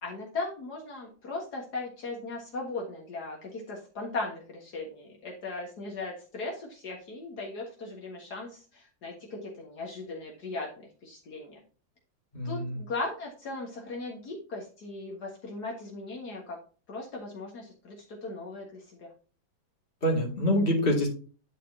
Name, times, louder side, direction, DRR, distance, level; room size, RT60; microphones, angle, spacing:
voice 1, 0.0-11.6 12.4-16.6 16.9-19.1, left 3 dB, 65° left, -2 dB, 2.2 m, -38 dB
voice 2, 12.3-12.8 20.0-21.1, equal, 30° left, -1 dB, 2.6 m, -26 dB
11.0 x 4.6 x 2.8 m, 0.38 s
omnidirectional pair, 1.9 m